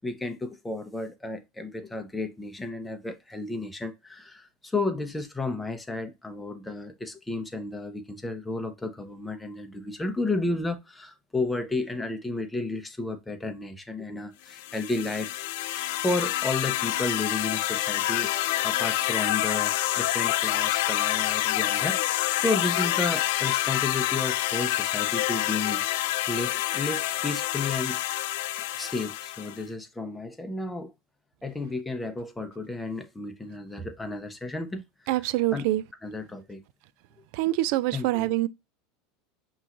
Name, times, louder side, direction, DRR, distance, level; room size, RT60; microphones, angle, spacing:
voice 1, 0.0-15.4 15.7-28.0 28.7-30.9 31.4-35.7 36.0-36.6 37.9-38.3, left 2 dB, 10° left, 0.8 m, -32 dB
sound 1, 14.5-29.6, left 15 dB, 70° left, 0.3 m, -27 dB
voice 2, 35.1-35.8 37.3-38.5, right 16 dB, 65° right, 0.3 m, -25 dB
5.5 x 3.0 x 2.5 m
supercardioid pair, 105°, 0 cm